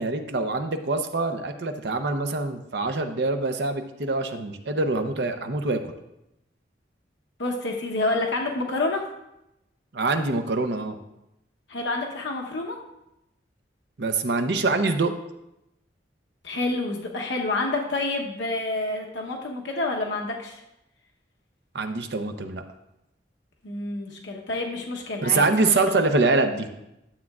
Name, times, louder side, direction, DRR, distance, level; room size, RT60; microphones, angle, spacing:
voice 1, 0.0-5.9 9.9-11.0 14.0-15.1 21.7-22.6 25.2-26.7, right 3 dB, 65° right, 7 dB, 0.7 m, -25 dB
voice 2, 7.4-9.0 11.7-12.8 16.4-20.6 23.6-25.9, left 2 dB, 80° left, 1 dB, 0.9 m, -28 dB
12.0 x 7.3 x 2.4 m, 0.87 s
head